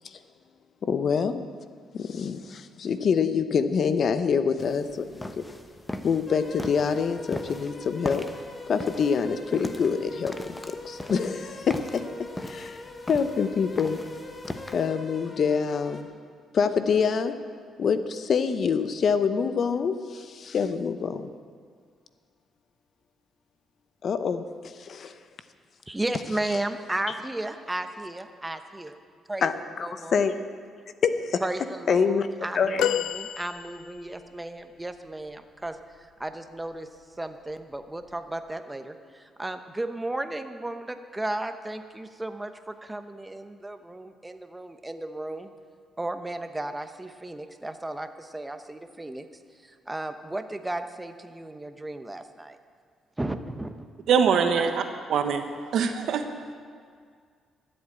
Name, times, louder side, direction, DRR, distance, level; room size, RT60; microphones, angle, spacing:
voice 1, 0.8-1.5 1.9-5.4 6.0-8.2 8.7-10.3 10.7-12.0 12.4-12.8 13.1-14.0 14.7-16.1 16.5-17.4 17.8-21.3 24.0-25.2 29.4-30.3 31.0-31.4 31.9-32.3 32.5-32.9, left 6 dB, 55° left, 10 dB, 0.8 m, -26 dB
sound 1, 4.6-14.9, left 2 dB, 15° left, 0.9 m, -40 dB
sound 2, 6.3-16.0, left 2 dB, 30° left, 1.8 m, -42 dB
voice 2, 25.9-29.0 29.3-29.5 29.8-30.2 31.4-45.5 46.0-49.3 49.5-52.6 53.2-53.8 54.6-54.7, right 1 dB, 15° right, 8 dB, 1.0 m, -34 dB
sound 3, 32.8-34.2 36.6-36.8 38.1-38.2, left 11 dB, 85° left, 0.4 m, -29 dB
voice 3, 54.1-54.7 55.1-55.4 55.7-56.3, right 6 dB, 70° right, 7 dB, 1.1 m, -22 dB
13.5 x 8.0 x 8.7 m, 2.1 s
cardioid pair, 90°, 0 cm